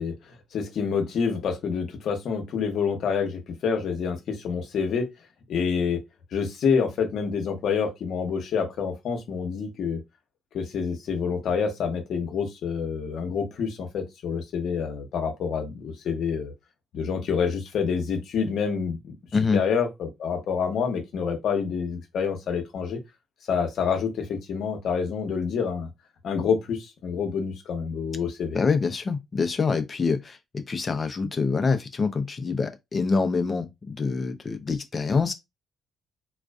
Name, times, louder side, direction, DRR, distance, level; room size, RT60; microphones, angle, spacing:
voice 1, 0.0-5.1 5.5-6.0 6.3-10.0 10.5-16.5 16.9-19.1 19.5-23.0 23.5-25.9 26.2-28.6, left 6 dB, 70° left, 0.8 m, -27 dB
voice 2, 28.5-35.3, left 4 dB, 35° left, 0.5 m, -25 dB
2.4 x 2.3 x 2.3 m
cardioid pair, 90°, 0 cm